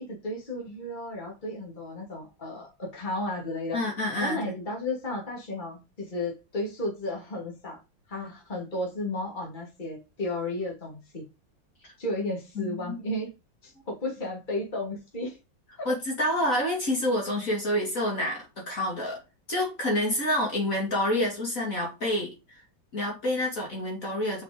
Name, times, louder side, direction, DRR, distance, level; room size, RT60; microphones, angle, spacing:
voice 1, 0.1-3.8 4.2-7.8 8.1-11.2 12.0-13.3 13.6-15.4 15.8-15.9, left 1 dB, 25° left, 2.6 m, -33 dB
voice 2, 3.7-4.6 11.8-11.9 12.6-13.0 15.9-19.2 19.5-22.6 22.9-24.4, left 1 dB, 45° left, 2.7 m, -28 dB
5.7 x 5.5 x 5.1 m
omnidirectional pair, 2.1 m